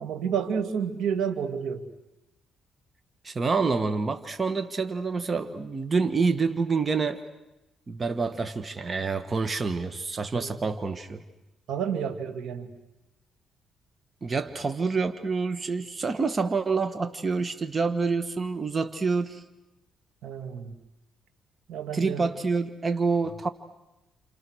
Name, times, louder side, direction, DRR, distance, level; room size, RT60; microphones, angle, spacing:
voice 1, 0.0-1.8 10.3-10.6 11.7-12.7 20.2-20.7 21.7-22.3, right 7 dB, 80° right, 7 dB, 2.6 m, -30 dB
voice 2, 3.2-7.2 7.9-11.2 14.2-19.4 21.9-23.5, right 4 dB, 30° right, 8 dB, 1.7 m, -27 dB
29.5 x 29.0 x 6.5 m, 0.98 s
cardioid pair, 90°, 0 cm